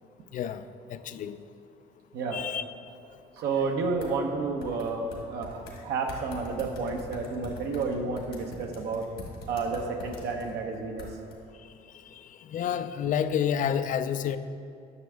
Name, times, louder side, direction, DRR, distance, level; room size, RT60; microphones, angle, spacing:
voice 1, 0.3-0.7 0.9-1.4 2.3-2.6 12.5-14.4, left 8 dB, 50° left, 11 dB, 0.4 m, -29 dB
voice 2, 3.4-9.1 9.5-11.1, right 4 dB, 80° right, 2 dB, 0.8 m, -31 dB
sound 1, 4.0-4.1 4.6-5.8 6.1-10.5 11.0-11.3, left 4 dB, 70° left, 1.6 m, -43 dB
9.5 x 6.2 x 3.4 m, 2.6 s
cardioid pair, 110°, 17 cm